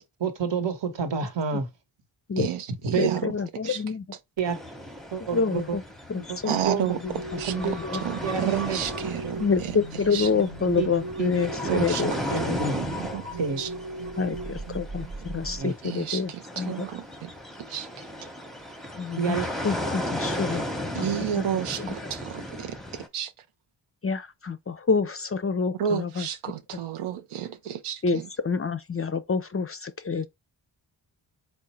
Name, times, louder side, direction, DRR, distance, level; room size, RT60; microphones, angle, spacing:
voice 1, 0.2-1.7 2.8-3.2 4.4-4.6 5.1-5.8 6.2-6.4 6.6-6.8 7.4-7.8 8.2-8.8 10.8-10.9 11.2-11.3 11.6-12.8 13.4-13.6 15.6-15.7 19.2-19.5, right 6 dB, 65° right, 1.1 m, -28 dB
voice 2, 2.4-3.3 3.7-3.8 6.4-7.5 7.9-9.7 10.1-10.3 11.7-12.2 12.7-13.3 13.6-13.7 15.8-17.3 17.7-17.9 20.9-23.3 25.8-28.3, right 10 dB, 90° right, 0.6 m, -31 dB
voice 3, 3.0-4.0 5.3-5.8 6.1-8.0 9.4-12.1 12.4-12.8 14.2-16.9 19.0-21.1 21.4-21.5 21.8-21.9 24.0-26.3 28.0-30.3, left 5 dB, 30° left, 0.4 m, -28 dB
sound 1, 4.4-23.1, equal, ahead, 0.8 m, -36 dB
sound 2, 7.0-15.6, right 2 dB, 40° right, 1.0 m, -37 dB
3.7 x 2.1 x 4.1 m
cardioid pair, 45°, 48 cm